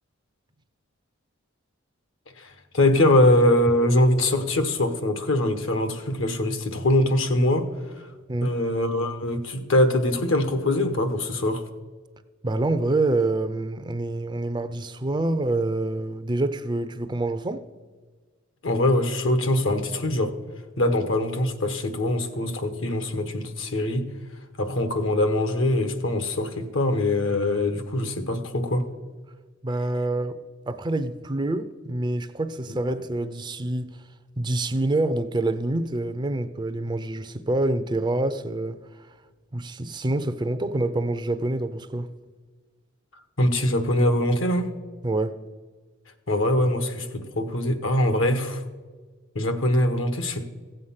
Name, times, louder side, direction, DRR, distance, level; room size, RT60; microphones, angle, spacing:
voice 1, 2.4-7.7 8.0-8.1 8.4-11.6 18.6-20.3 20.8-24.1 24.6-28.8 32.7-32.8 43.4-44.7 46.3-48.6 49.3-50.5, left 1 dB, 70° left, 1.2 m, -23 dB
voice 2, 12.4-17.6 29.6-30.4 30.7-34.0 34.4-38.8 39.5-42.1 45.0-45.4, right 2 dB, 20° right, 0.5 m, -26 dB
15.5 x 7.9 x 5.7 m
head